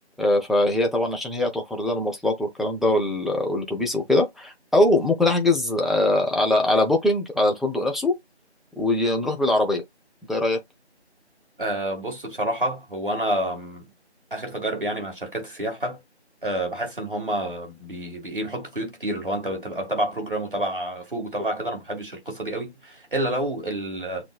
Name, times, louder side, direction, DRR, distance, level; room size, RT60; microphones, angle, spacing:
voice 1, 0.2-8.2 8.8-9.8 10.3-10.6, left 1 dB, ahead, 0.5 m, -22 dB
voice 2, 11.6-13.8 14.3-16.0 16.4-24.2, right 1 dB, 50° right, 2.0 m, -29 dB
7.1 x 2.4 x 2.3 m
figure-of-eight pair, 175°, 34 cm